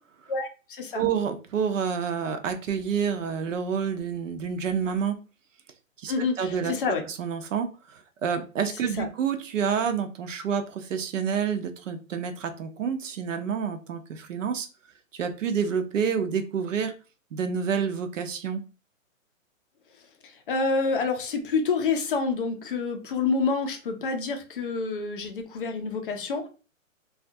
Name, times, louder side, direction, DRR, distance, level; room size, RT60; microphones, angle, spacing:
voice 1, 0.3-1.0 6.1-7.0 9.0-9.1 20.2-26.5, left 4 dB, 40° left, 5 dB, 0.5 m, -28 dB
voice 2, 0.9-5.1 6.0-6.1 6.4-6.7 7.1-14.7 15.1-16.9 17.3-18.6, right 7 dB, 65° right, 7 dB, 0.6 m, -28 dB
2.5 x 2.3 x 2.5 m, 0.33 s
hypercardioid pair, 160°, 41 cm